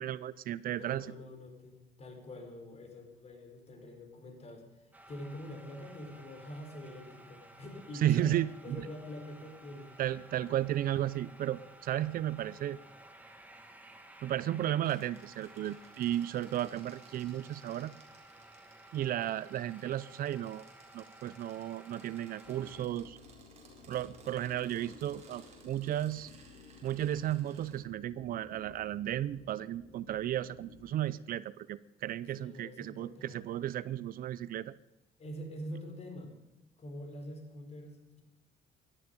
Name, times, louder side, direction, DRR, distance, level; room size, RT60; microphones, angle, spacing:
voice 1, 0.0-1.1 8.0-8.9 10.0-12.8 14.2-17.9 18.9-20.6 20.9-23.2 23.9-26.3 26.8-34.7, right 12 dB, 60° right, 18 dB, 0.5 m, -34 dB
voice 2, 0.7-10.0 32.3-33.4 35.2-36.3 36.8-38.2, left 1 dB, 40° left, 4 dB, 4.4 m, -45 dB
sound 1, 4.9-22.9, right 1 dB, 10° right, 2.0 m, -55 dB
sound 2, 14.8-27.8, right 4 dB, 40° right, 4.4 m, -60 dB
sound 3, 22.4-30.9, left 5 dB, 70° left, 2.3 m, -56 dB
17.5 x 12.0 x 5.3 m, 0.95 s
cardioid pair, 110°, 17 cm